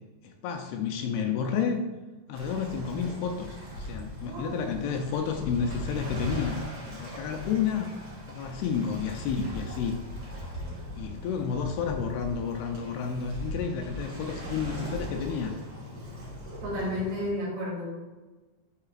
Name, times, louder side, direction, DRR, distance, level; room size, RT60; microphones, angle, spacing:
voice 1, 0.2-1.8 2.3-7.9 8.3-10.0 11.0-15.6, left 6 dB, 80° left, 4 dB, 2.3 m, -31 dB
Waves surf, 2.3-17.3, equal, 45° right, 1.6 m, -39 dB
voice 2, 4.2-4.9 16.6-17.9, left 1 dB, 65° right, -6 dB, 3.6 m, -32 dB
11.0 x 3.8 x 2.5 m, 1.2 s
omnidirectional pair, 4.7 m